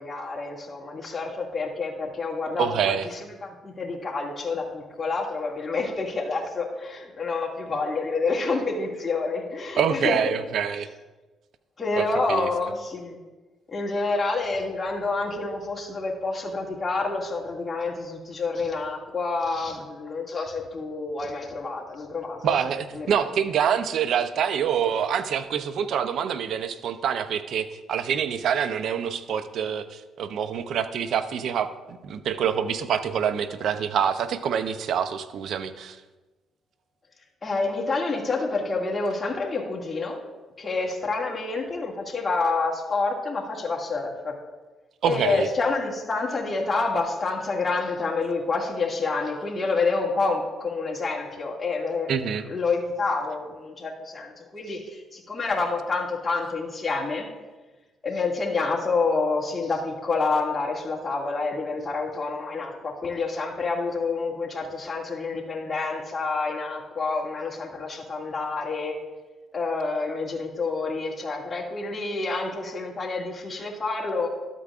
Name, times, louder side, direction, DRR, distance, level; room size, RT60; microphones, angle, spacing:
voice 1, 0.0-10.2 11.8-13.2 13.7-22.6 22.9-23.1 37.4-40.2 40.6-44.3 45.1-52.1 52.5-57.3 58.0-68.9 69.5-74.3, left 3 dB, 25° left, -3 dB, 2.1 m, -28 dB
voice 2, 2.6-3.1 9.8-10.9 12.0-12.7 22.4-36.0 45.0-45.5 52.1-52.4, right 8 dB, 70° right, 11 dB, 0.5 m, -26 dB
12.5 x 8.3 x 2.5 m, 1.2 s
cardioid pair, 90°, 0 cm